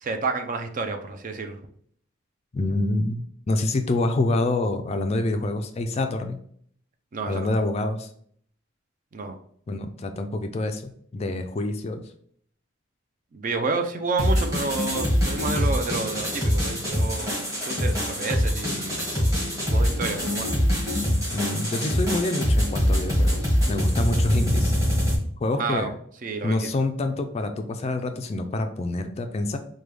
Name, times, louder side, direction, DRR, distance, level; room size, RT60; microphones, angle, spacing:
voice 1, 0.0-1.6 7.1-7.5 9.1-9.3 13.3-19.0 19.7-20.5 25.6-25.9 26.2-26.7, right 4 dB, 40° right, 6 dB, 0.4 m, -30 dB
voice 2, 2.5-6.4 7.3-8.1 9.7-12.0 21.3-24.7 25.4-25.9 26.4-29.6, left 2 dB, 30° left, 7 dB, 0.3 m, -27 dB
sound 1, 14.2-25.2, equal, 15° right, 1.5 m, -24 dB
4.7 x 2.2 x 3.3 m, 0.63 s
head